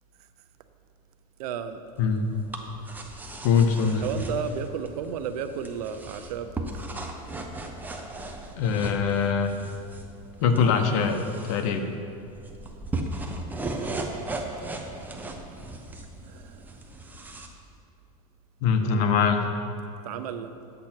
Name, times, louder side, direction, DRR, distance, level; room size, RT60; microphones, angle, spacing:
voice 1, 1.4-1.8 4.0-6.9 16.2-16.8 18.8-19.1 20.0-20.5, right 7 dB, 80° right, 10 dB, 0.7 m, -33 dB
sound 1, 2.0-17.5, right 2 dB, 10° right, 0.7 m, -37 dB
voice 2, 3.4-4.0 8.6-9.5 10.4-11.8 18.6-19.4, left 6 dB, 65° left, 6 dB, 1.0 m, -23 dB
9.8 x 8.1 x 4.5 m, 2.8 s
supercardioid pair, 140°, 19 cm